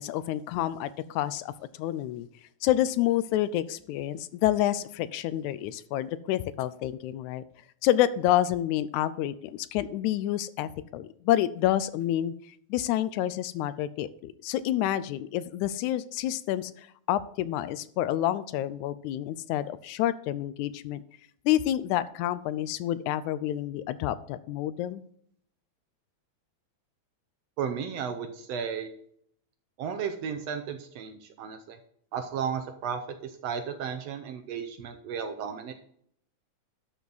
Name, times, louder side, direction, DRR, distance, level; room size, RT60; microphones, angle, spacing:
voice 1, 0.0-1.5 1.8-2.3 2.6-7.4 7.8-12.3 12.7-21.0 21.5-25.0, left 13 dB, 85° left, 16 dB, 1.9 m, -28 dB
voice 2, 27.6-28.9 29.8-31.8 32.1-35.7, right 7 dB, 70° right, 7 dB, 1.7 m, -34 dB
12.0 x 5.9 x 4.0 m, 0.65 s
omnidirectional pair, 3.4 m